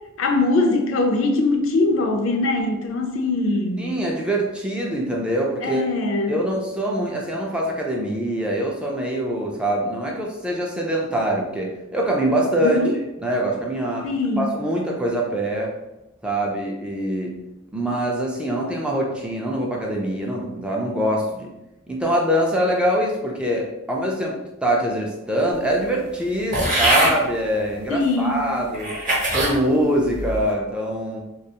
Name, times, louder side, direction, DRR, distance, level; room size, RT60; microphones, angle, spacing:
voice 1, 0.2-4.0 5.6-6.4 12.6-12.9 14.0-14.5 27.9-28.5, left 2 dB, 70° left, 3 dB, 0.4 m, -22 dB
voice 2, 3.8-5.9 6.3-12.8 13.2-14.1 14.4-15.7 16.2-17.3 17.7-21.5 21.9-28.9 29.3-31.2, right 1 dB, 5° right, -2 dB, 0.3 m, -24 dB
sound 1, 26.5-27.2 28.0-28.1 28.7-29.6 30.1-30.5, right 1 dB, 40° right, 0.8 m, -21 dB
2.3 x 2.2 x 2.8 m, 0.95 s
head